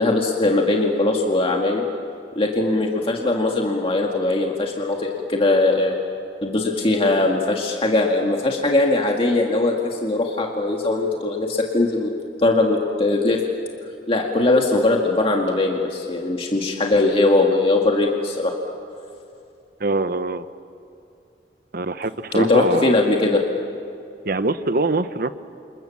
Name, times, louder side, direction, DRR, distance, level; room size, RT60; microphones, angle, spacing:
voice 1, 0.0-1.8 2.4-6.0 6.4-12.1 12.4-13.4 14.1-18.5 22.3-23.4, left 2 dB, 30° left, 0 dB, 2.1 m, -20 dB
voice 2, 19.8-20.5 21.7-22.9 24.2-25.3, right 3 dB, 55° right, 11 dB, 1.0 m, -23 dB
28.5 x 28.5 x 7.2 m, 2.5 s
head